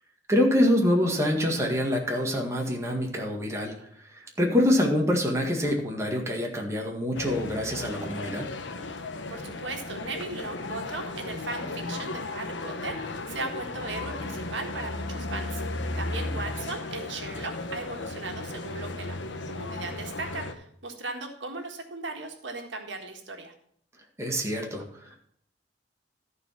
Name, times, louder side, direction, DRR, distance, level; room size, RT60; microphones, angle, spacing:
voice 1, 0.3-3.7 4.1-8.5 24.2-25.2, left 1 dB, 15° right, 0 dB, 1.9 m, -25 dB
sound 1, 7.1-20.5, left 2 dB, 80° left, 0.9 m, -35 dB
voice 2, 9.3-19.2 19.5-23.5, right 3 dB, 85° right, 3 dB, 1.7 m, -37 dB
13.5 x 4.8 x 5.9 m, 0.66 s
head